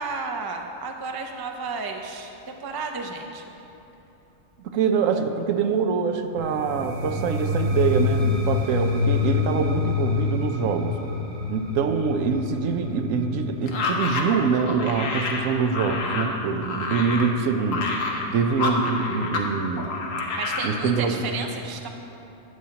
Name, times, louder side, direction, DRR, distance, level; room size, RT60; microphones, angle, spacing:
voice 1, 0.0-3.5 18.1-18.5 20.4-21.9, right 4 dB, 30° right, 3 dB, 0.4 m, -33 dB
voice 2, 4.6-11.0 11.5-17.9 18.3-19.9 20.6-21.3, right 5 dB, 80° right, 7 dB, 1.0 m, -24 dB
sound 1, 6.4-16.2, left 5 dB, 55° right, 1.0 m, -27 dB
sound 2, 13.7-19.5 19.8-20.7, left 3 dB, 85° left, 1.3 m, -28 dB
12.5 x 8.9 x 2.9 m, 3.0 s
omnidirectional pair, 1.3 m